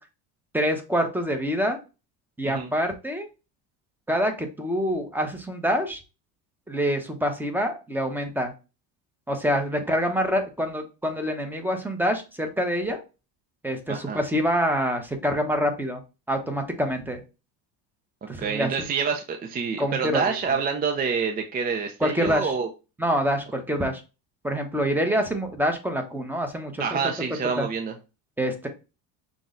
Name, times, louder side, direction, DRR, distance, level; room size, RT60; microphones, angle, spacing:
voice 1, 0.5-1.8 2.4-3.3 4.1-6.0 6.7-8.5 9.3-13.0 13.6-16.0 16.3-17.2 18.3-18.9 19.8-20.4 22.0-22.5 23.0-24.0 24.4-27.0 27.6-27.7 28.4-28.7, equal, 5° right, 5 dB, 0.9 m, -26 dB
voice 2, 13.9-14.2 18.4-22.7 26.8-27.9, right 5 dB, 20° right, 4 dB, 0.5 m, -27 dB
6.0 x 2.3 x 3.8 m, 0.29 s
cardioid pair, 120°, 44 cm